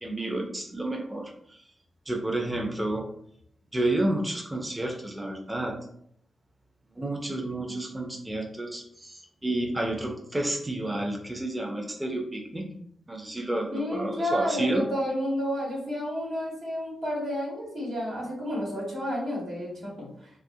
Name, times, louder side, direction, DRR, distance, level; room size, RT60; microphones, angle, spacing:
voice 1, 0.0-1.6 2.1-3.1 3.7-5.8 7.0-12.7 13.1-14.8, right 1 dB, 20° right, 1 dB, 0.5 m, -30 dB
voice 2, 13.7-20.3, equal, 80° right, -6 dB, 1.2 m, -31 dB
2.6 x 2.3 x 2.7 m, 0.71 s
supercardioid pair, 45°, 0 cm